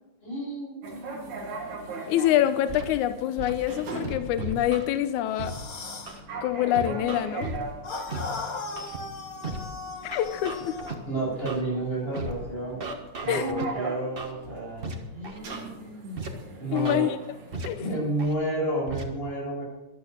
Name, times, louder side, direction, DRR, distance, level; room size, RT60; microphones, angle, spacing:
voice 1, 0.2-1.4 11.1-12.8 13.2-17.1 17.8-19.6, right 2 dB, 20° left, -4 dB, 7.6 m, -31 dB
sound 1, 0.8-18.3, right 3 dB, 80° right, 3.7 m, -40 dB
voice 2, 2.1-5.6 6.4-7.5 10.0-10.8 13.3-13.5 16.7-17.2 17.7-17.8, left 12 dB, 90° left, 11 dB, 2.2 m, -25 dB
Scratching (performance technique), 2.7-2.9 3.4-3.5 4.0-4.9 5.4-5.5 6.1-6.2 6.7-7.6 8.1-8.2 8.8-9.0 9.4-9.6 10.1-10.9 11.5-11.6 12.1-12.3 12.8-13.6 14.2-14.3 14.8-14.9 15.2-15.6 16.2-16.3 16.8-16.9 17.5-17.7 18.2-18.3 18.9-19.0, right 3 dB, 45° right, 0.7 m, -35 dB
sound 2, 5.3-6.2 7.8-11.0, left 3 dB, 40° left, 1.5 m, -37 dB
14.0 x 11.5 x 6.4 m, 1.0 s
omnidirectional pair, 3.3 m